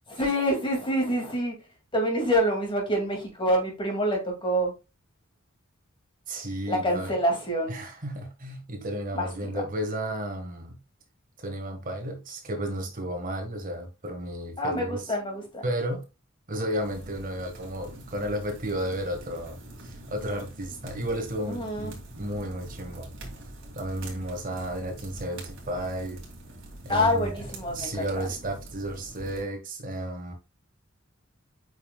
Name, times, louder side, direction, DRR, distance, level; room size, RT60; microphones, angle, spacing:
voice 1, 0.1-1.6 1.9-4.7 6.7-7.8 9.1-9.5 14.6-15.6 21.5-22.0 26.9-28.3, equal, 25° left, 2.4 m, -27 dB
voice 2, 6.3-7.1 7.7-10.8 11.4-15.1 15.6-16.0 16.5-23.1 23.7-26.2 26.8-27.4 27.7-30.3, right 1 dB, 45° right, 1.6 m, -33 dB
sound 1, 16.8-29.4, right 1 dB, 65° right, 2.7 m, -44 dB
8.2 x 5.6 x 2.3 m
head